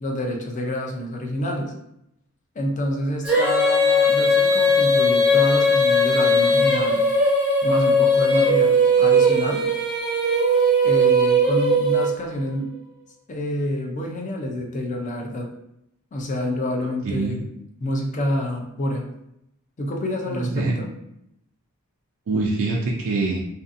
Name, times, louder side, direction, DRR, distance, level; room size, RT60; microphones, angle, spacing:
voice 1, 0.0-1.7 2.6-7.0 7.6-9.6 10.8-12.7 13.3-15.5 16.1-17.4 17.8-19.1 19.8-20.9, left 1 dB, 35° left, 0 dB, 0.5 m, -27 dB
Female singing, 3.2-12.4, equal, 5° right, 0.7 m, -18 dB
voice 2, 17.0-17.4 20.3-20.7 22.3-23.4, right 3 dB, 65° right, -2 dB, 0.4 m, -24 dB
2.6 x 2.4 x 2.5 m, 0.80 s
head